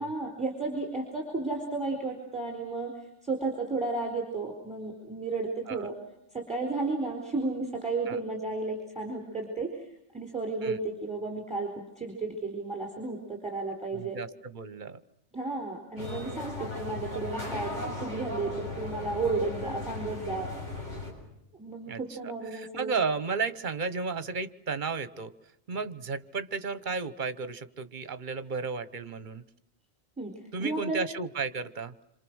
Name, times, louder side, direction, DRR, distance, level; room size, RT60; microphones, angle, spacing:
voice 1, 0.0-5.9 6.3-14.2 15.3-20.5 21.6-23.0 30.2-31.1, right 3 dB, 5° right, 1 dB, 4.3 m, -33 dB
voice 2, 13.9-15.0 21.9-22.0 22.5-25.3 25.7-29.4 30.5-31.9, right 4 dB, 45° right, 13 dB, 1.3 m, -33 dB
sound 1, 16.0-21.1, left 2 dB, 90° left, 7.6 m, -37 dB
27.5 x 27.0 x 6.4 m, 0.81 s
omnidirectional pair, 1.2 m